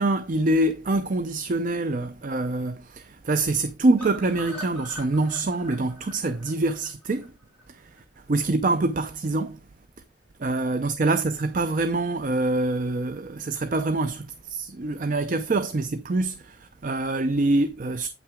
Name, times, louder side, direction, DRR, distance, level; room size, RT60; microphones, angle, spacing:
voice 1, 0.0-7.3 7.7-7.9 8.3-9.6 10.4-18.1, right 2 dB, 50° right, 0.5 m, -25 dB
sound 1, 4.0-8.0 8.3-8.4 8.7-8.8 9.1-9.2, equal, 10° left, 3.5 m, -43 dB
8.5 x 5.8 x 3.6 m
head